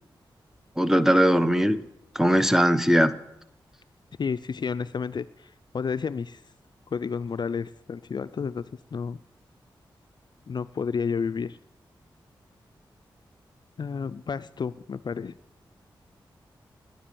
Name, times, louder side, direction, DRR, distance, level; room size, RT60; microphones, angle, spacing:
voice 1, 0.8-1.8 2.1-3.2, equal, 5° right, 13 dB, 0.9 m, -20 dB
voice 2, 4.2-5.3 5.7-6.4 6.9-8.6 8.9-9.2 10.5-11.6 13.8-15.3, left 6 dB, 55° left, 14 dB, 0.4 m, -30 dB
10.5 x 10.0 x 6.8 m, 0.82 s
cardioid pair, 45°, 9 cm